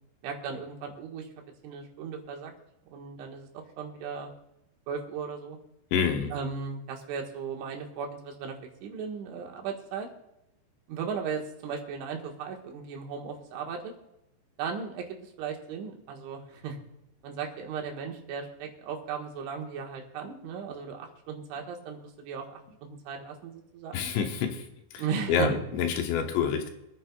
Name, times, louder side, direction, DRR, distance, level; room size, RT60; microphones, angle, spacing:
voice 1, 0.2-1.3 1.6-2.5 2.9-4.3 4.9-5.6 6.3-8.6 8.8-10.1 10.9-13.9 14.6-16.8 17.2-24.1 25.0-25.6, right 6 dB, 85° right, 1 dB, 3.9 m, -36 dB
voice 2, 5.9-6.3 23.9-24.7 24.9-25.0 25.3-26.7, left 6 dB, 75° left, 4 dB, 3.2 m, -27 dB
26.5 x 9.5 x 2.3 m, 0.86 s
omnidirectional pair, 5.3 m